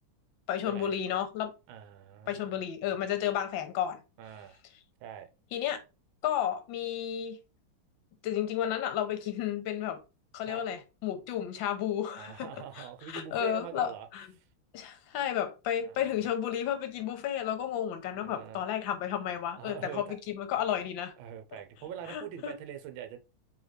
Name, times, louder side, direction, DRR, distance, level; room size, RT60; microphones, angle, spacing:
voice 1, 0.5-1.5 2.3-4.0 5.5-5.8 6.2-7.4 8.2-10.0 10.3-14.3 14.7-21.1 22.1-22.5, left 10 dB, 70° left, 1.4 m, -32 dB
voice 2, 1.7-2.5 4.2-4.6 5.0-5.3 10.4-10.6 12.2-14.1 15.8-16.3 18.1-18.6 19.6-20.2 21.2-23.2, right 9 dB, 75° right, 1.4 m, -43 dB
3.9 x 3.5 x 3.2 m
omnidirectional pair, 2.3 m